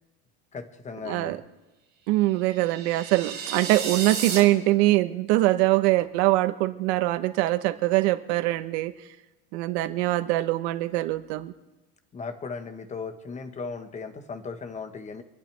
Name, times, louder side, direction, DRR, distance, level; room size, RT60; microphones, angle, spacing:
voice 1, 0.5-1.4 12.1-15.2, left 4 dB, 20° left, 8 dB, 1.3 m, -37 dB
voice 2, 1.0-1.4 2.1-8.9 9.5-11.5, right 17 dB, 80° right, 11 dB, 1.2 m, -23 dB
sound 1, 2.4-4.4, right 6 dB, 30° right, 3.2 m, -33 dB
26.5 x 12.0 x 3.5 m, 1.1 s
cardioid pair, 145°, 32 cm